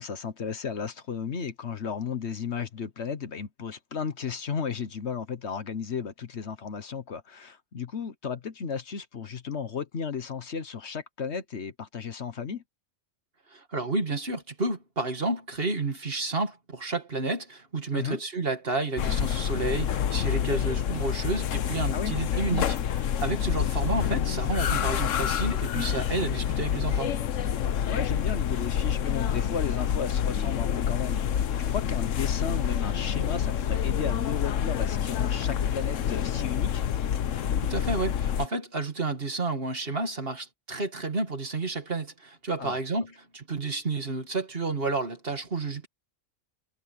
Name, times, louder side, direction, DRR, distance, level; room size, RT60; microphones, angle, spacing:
voice 1, 0.0-12.6 17.9-18.2 21.9-22.1 27.8-36.8 42.6-42.8, left 6 dB, 60° left, 1.4 m, -34 dB
voice 2, 13.5-27.1 37.6-45.9, right 3 dB, 50° right, 2.4 m, -31 dB
sound 1, 19.0-38.5, left 9 dB, 80° left, 1.2 m, -27 dB
omnidirectional pair, 1.3 m